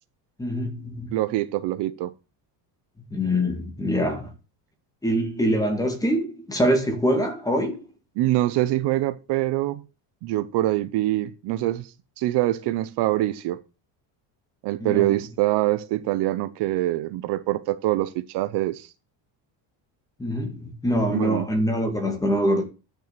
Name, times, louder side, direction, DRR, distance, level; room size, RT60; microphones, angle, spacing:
voice 1, 0.4-1.1 3.1-4.3 5.0-7.8 14.8-15.1 20.2-22.6, equal, 5° left, 2.1 m, -24 dB
voice 2, 1.1-2.1 8.2-9.8 10.2-13.6 14.6-18.9 21.1-21.5, right 16 dB, 60° right, 0.9 m, -24 dB
10.5 x 6.4 x 6.8 m
cardioid pair, 170°, 47 cm